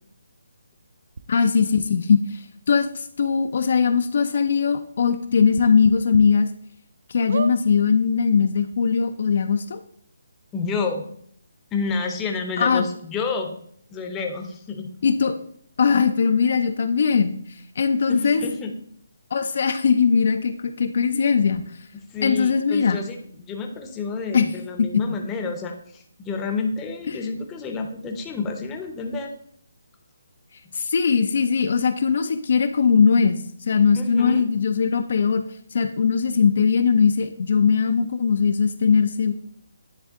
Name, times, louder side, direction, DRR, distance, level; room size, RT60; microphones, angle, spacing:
sound 1, 1.2-1.3 1.8-1.9 2.8-2.9 3.2-3.3 3.8-3.9 5.5-6.2 6.7-6.8 7.3-7.6 8.4-8.5 8.7-8.8, right 4 dB, 60° right, 0.4 m, -31 dB
voice 1, 1.3-6.5 7.1-9.8 12.6-12.8 15.0-15.4 15.8-18.4 19.3-21.6 22.2-23.0 24.3-24.5 27.1-27.2 30.7-35.4 35.7-39.3, left 6 dB, 55° left, 8 dB, 0.4 m, -20 dB
voice 2, 10.5-11.0 11.7-13.5 13.9-14.9 18.1-18.8 21.9-29.3 34.0-34.4, left 4 dB, 15° left, 3 dB, 0.6 m, -29 dB
9.7 x 3.5 x 3.5 m, 0.64 s
hypercardioid pair, 165°, 0 cm